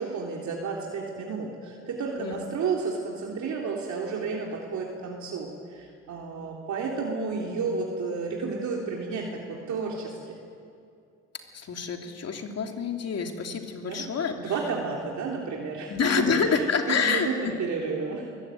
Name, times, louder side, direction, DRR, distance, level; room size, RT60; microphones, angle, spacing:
voice 1, 0.0-10.3 13.9-14.0 14.4-16.6 16.9-18.4, right 4 dB, 70° right, -1 dB, 3.4 m, -32 dB
voice 2, 11.5-14.5 15.9-17.5, left 5 dB, 55° left, 4 dB, 3.1 m, -27 dB
23.0 x 21.0 x 9.2 m, 2.5 s
cardioid pair, 90°, 30 cm